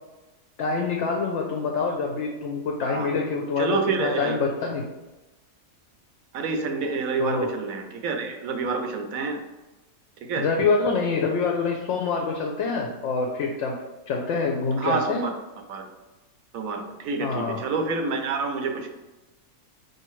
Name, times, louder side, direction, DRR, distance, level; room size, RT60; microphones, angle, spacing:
voice 1, 0.6-4.8 7.2-7.5 10.4-13.8 14.1-15.2 17.2-17.6, left 4 dB, 65° left, 1 dB, 0.8 m, -26 dB
voice 2, 3.6-4.4 6.3-9.4 10.2-10.5 14.8-15.3 15.7-15.8 16.5-18.9, right 4 dB, 80° right, 4 dB, 1.0 m, -28 dB
4.8 x 2.7 x 3.0 m, 1.1 s
omnidirectional pair, 1.5 m